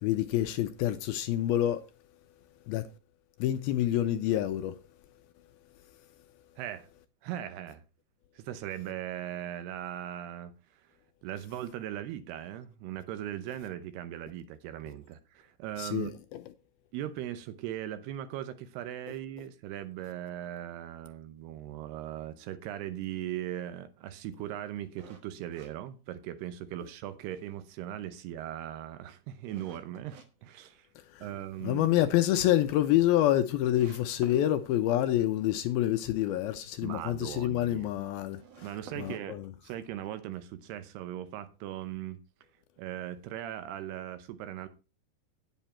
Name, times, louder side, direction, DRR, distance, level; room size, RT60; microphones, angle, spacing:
voice 1, 0.0-1.8 2.7-2.9 3.4-4.8 15.8-16.1 31.1-31.3 31.6-38.4 39.0-39.5, left 13 dB, 80° left, 2.3 m, -27 dB
voice 2, 6.6-6.9 7.2-7.8 8.4-10.8 11.2-16.1 16.9-30.9 31.2-31.9 36.8-37.9 38.6-42.2 42.8-44.7, right 12 dB, 80° right, 2.9 m, -39 dB
sound 1, 25.0-26.7 27.1-27.2 27.7-30.3 30.7-31.4 31.8-31.9 32.2-32.3 32.5-32.6 33.2-33.3 33.7-34.5 38.2-40.1, right 7 dB, 65° right, 1.6 m, -53 dB
9.2 x 8.2 x 4.3 m
omnidirectional pair, 4.7 m